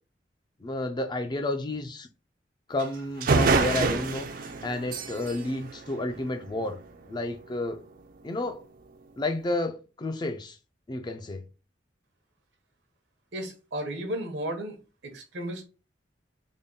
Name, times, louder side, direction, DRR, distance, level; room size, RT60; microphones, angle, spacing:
voice 1, 0.6-2.1 2.7-4.3 4.6-6.8 7.1-7.8 8.2-8.6 9.2-10.6 10.9-11.4, left 2 dB, 25° left, 0.4 m, -31 dB
sound 1, 2.8-2.9 3.2-6.7, right 3 dB, 50° right, 0.4 m, -27 dB
voice 2, 13.3-14.8 15.0-15.7, right 1 dB, 75° right, 0.9 m, -34 dB
3.5 x 2.1 x 3.8 m
head